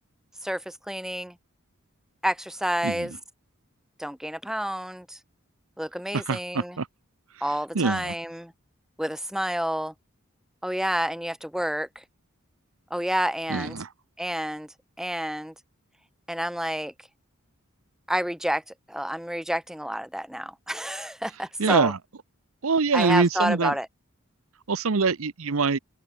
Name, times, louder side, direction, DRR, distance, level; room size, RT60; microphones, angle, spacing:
voice 1, 0.4-1.3 2.2-3.1 4.0-5.2 5.8-6.8 7.4-8.5 9.0-9.9 10.6-12.0 12.9-13.8 14.2-14.7 15.0-15.5 16.3-16.9 18.1-21.9 22.9-23.9, equal, ahead, 1.0 m, -29 dB
voice 2, 6.1-6.9 7.7-8.1 13.5-13.9 21.6-22.0 22.6-23.7 24.7-25.8, right 4 dB, 75° right, 0.8 m, -24 dB
open air
head